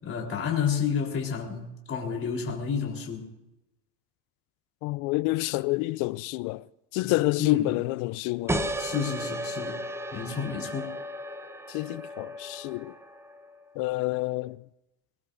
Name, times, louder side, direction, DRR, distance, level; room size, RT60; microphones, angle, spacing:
voice 1, 0.0-3.2 7.4-7.6 8.8-9.8 10.1-11.0, left 7 dB, 25° left, 3.9 m, -30 dB
voice 2, 4.8-6.7 6.9-8.7 11.7-12.9 13.8-14.6, left 20 dB, 45° left, 0.4 m, -28 dB
sound 1, 8.5-13.7, right 1 dB, 5° right, 0.8 m, -35 dB
24.0 x 18.5 x 2.6 m
supercardioid pair, 115°, 47 cm